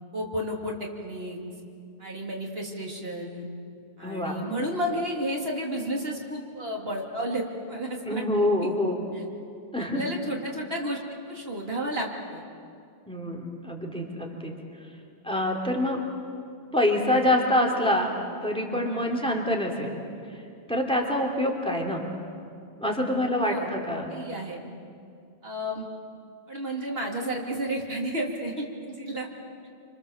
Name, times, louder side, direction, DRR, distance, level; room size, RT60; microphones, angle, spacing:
voice 1, 0.1-1.4 2.0-3.5 4.0-8.2 8.6-8.7 9.1-9.2 9.8-11.0 11.3-12.4 18.8-19.1 23.4-23.7 24.1-24.6 25.4-25.9 26.5-29.3, equal, 70° right, 0 dB, 3.2 m, -32 dB
voice 2, 4.0-4.4 8.0-8.9 9.7-10.0 13.1-14.5 15.2-16.1 16.7-19.9 20.7-22.0 22.8-24.1, left 1 dB, 5° left, 1 dB, 3.2 m, -26 dB
28.0 x 26.0 x 7.3 m, 2.4 s
omnidirectional pair, 1.1 m